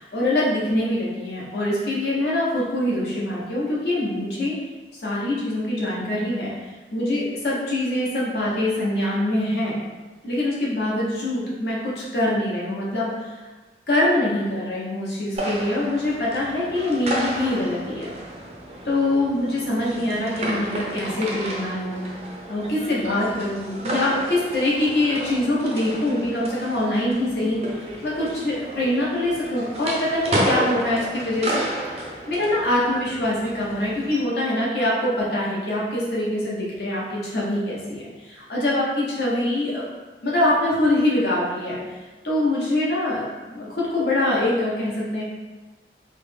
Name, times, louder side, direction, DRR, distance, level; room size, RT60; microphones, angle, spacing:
voice 1, 0.0-4.5 5.0-9.7 10.2-13.5 13.9-18.1 18.8-22.1 22.5-27.6 28.0-31.7 32.3-39.9 40.2-41.8 42.2-45.2, left 1 dB, 65° left, -6 dB, 0.8 m, -24 dB
sound 1, 15.3-34.2, right 1 dB, 35° right, 0.4 m, -31 dB
3.1 x 2.1 x 3.3 m, 1.2 s
head